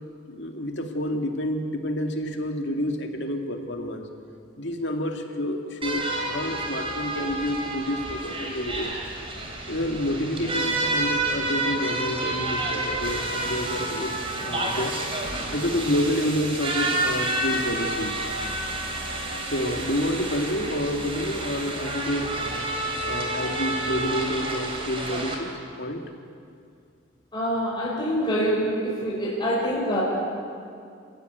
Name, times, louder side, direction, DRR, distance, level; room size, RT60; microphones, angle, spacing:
voice 1, 0.3-4.1 4.6-8.9 9.6-14.1 14.4-18.1 19.4-22.6 23.0-26.0, left 1 dB, 55° left, 4 dB, 2.4 m, -29 dB
sound 1, 5.8-25.3, right 2 dB, 25° right, 3.5 m, -29 dB
voice 2, 27.3-30.0, equal, 20° left, -6 dB, 5.2 m, -25 dB
29.5 x 15.5 x 9.5 m, 2.4 s
head